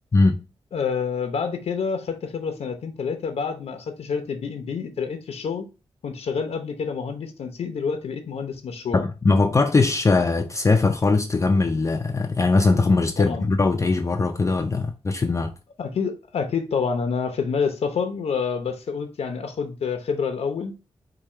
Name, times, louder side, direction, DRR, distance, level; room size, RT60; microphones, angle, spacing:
voice 1, 0.7-5.7 6.0-9.0 13.2-13.5 15.8-20.7, left 6 dB, 80° left, 0.7 m, -28 dB
voice 2, 8.9-15.5, left 3 dB, 30° left, 0.4 m, -20 dB
4.7 x 2.3 x 4.2 m
wide cardioid pair, 110°, 11 cm